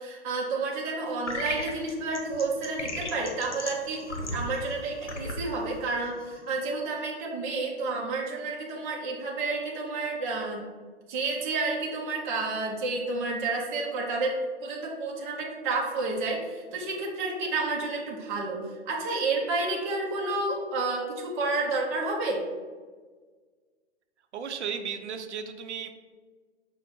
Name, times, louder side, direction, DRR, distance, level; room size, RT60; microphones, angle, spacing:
voice 1, 0.0-10.7 11.1-22.4, right 3 dB, 15° right, -2 dB, 0.4 m, -30 dB
sound 1, 1.3-6.6, left 2 dB, 85° left, 0.9 m, -37 dB
voice 2, 24.3-25.9, right 7 dB, 75° right, 7 dB, 0.6 m, -35 dB
5.3 x 2.0 x 4.6 m, 1.5 s
figure-of-eight pair, 125°, 35 cm